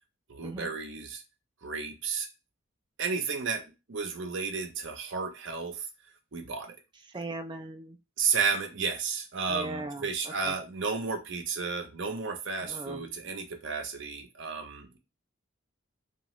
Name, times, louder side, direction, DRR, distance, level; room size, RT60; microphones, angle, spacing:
voice 1, 0.3-1.2 1.6-2.3 3.0-3.6 3.9-5.9 6.3-6.8 8.2-15.0, right 5 dB, 65° right, 5 dB, 0.6 m, -32 dB
voice 2, 7.1-8.0 9.5-10.5 12.6-13.0, right 2 dB, 20° right, 7 dB, 0.3 m, -39 dB
2.8 x 2.4 x 3.0 m, 0.27 s
head